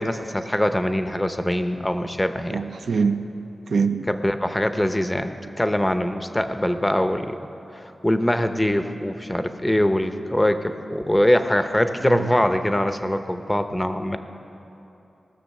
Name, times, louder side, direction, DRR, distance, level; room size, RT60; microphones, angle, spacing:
voice 1, 0.0-2.6 4.1-7.4 7.7-14.2, left 1 dB, 10° left, 8 dB, 0.7 m, -23 dB
voice 2, 2.5-3.2 3.7-4.1 12.2-12.3, right 5 dB, 75° right, 7 dB, 0.5 m, -23 dB
19.0 x 6.6 x 6.5 m, 2.9 s
wide cardioid pair, 85°, 0 cm